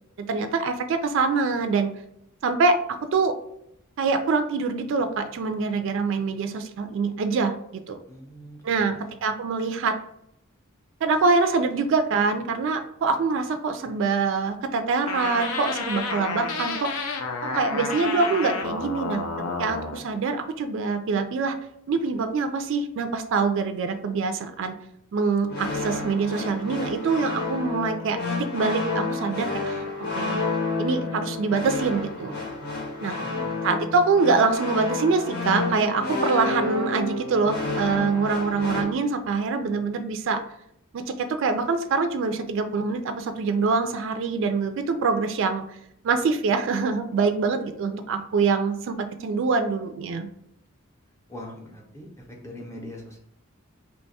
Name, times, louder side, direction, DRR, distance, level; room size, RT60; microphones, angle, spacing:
voice 1, 0.3-1.9 2.4-3.3 4.0-8.0 8.6-10.0 11.0-17.0 17.5-19.2 19.6-21.6 21.9-24.8 25.1-29.8 30.2-30.4 30.8-32.4 33.0-33.2 33.6-40.4 40.9-45.8 46.0-50.3, right 4 dB, 60° right, 7 dB, 0.3 m, -25 dB
voice 2, 8.1-9.2 33.2-33.7 51.3-53.2, left 1 dB, 15° left, -1 dB, 0.6 m, -42 dB
sound 1, 15.1-20.0, left 4 dB, 80° left, 0.5 m, -30 dB
sound 2, 25.5-38.8, left 3 dB, 45° left, 0.7 m, -30 dB
2.9 x 2.2 x 4.0 m, 0.76 s
head